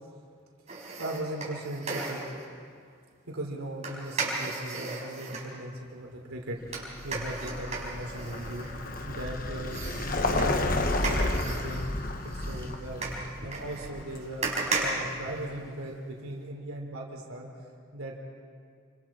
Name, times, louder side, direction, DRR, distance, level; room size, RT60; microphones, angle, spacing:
sound 1, 0.7-2.5 3.8-5.5 6.7-9.2 9.7-15.9 16.3-16.4, right 3 dB, 30° right, 4.5 m, -35 dB
voice 1, 1.0-2.2 3.3-9.8 10.2-13.0 13.4-14.5 14.8-17.5 17.9-18.1, right 1 dB, 80° right, 0 dB, 3.2 m, -38 dB
Vehicle, 6.7-15.5, left 2 dB, 40° left, 1.2 m, -32 dB
29.5 x 25.0 x 4.3 m, 2.1 s
head